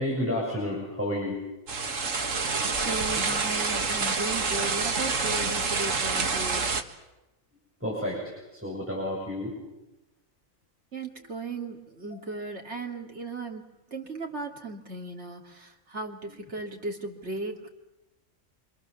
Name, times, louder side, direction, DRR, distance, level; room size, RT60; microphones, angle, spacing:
voice 1, 0.0-1.4 7.8-9.5 9.8-9.9 12.1-12.2 16.3-16.4, left 1 dB, 10° right, -4 dB, 7.5 m, -31 dB
sound 1, 1.7-6.8, right 4 dB, 70° right, 2.0 m, -27 dB
voice 2, 2.9-6.7 10.9-13.6 13.9-17.7, right 2 dB, 55° right, 1 dB, 3.2 m, -36 dB
27.0 x 26.5 x 7.2 m, 0.98 s
omnidirectional pair, 1.4 m